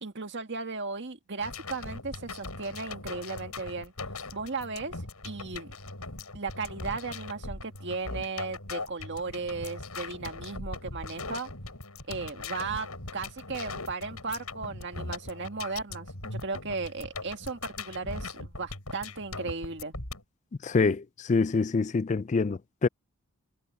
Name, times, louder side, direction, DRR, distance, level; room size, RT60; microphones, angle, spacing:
voice 1, 0.0-3.9 4.3-5.0 5.2-5.7 6.3-11.5 12.1-12.9 13.1-16.1 16.4-19.9, right 4 dB, 50° right, 1.9 m, -36 dB
sound 1, 1.4-20.2, left 3 dB, 80° left, 7.9 m, -40 dB
voice 2, 20.6-22.9, left 4 dB, 30° left, 0.3 m, -26 dB
head